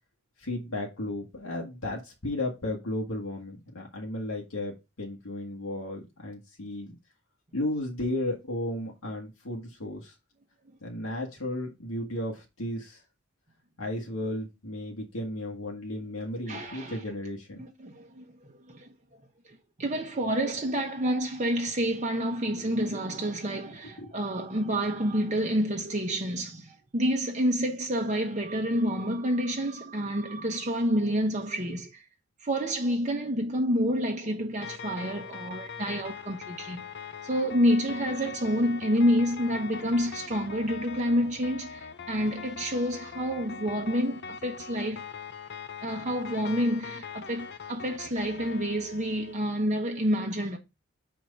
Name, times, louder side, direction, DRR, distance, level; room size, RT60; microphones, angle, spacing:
voice 1, 0.4-6.9 7.5-10.1 10.8-13.0 13.8-17.6 24.0-24.1, left 1 dB, 90° left, 1.7 m, -34 dB
voice 2, 16.5-17.0 17.6-18.9 19.4-32.0 32.4-36.8 37.2-45.1 45.8-50.6, equal, 35° right, 1.0 m, -28 dB
sound 1, 34.6-49.3, left 6 dB, 50° left, 0.7 m, -42 dB
6.1 x 4.6 x 5.3 m
head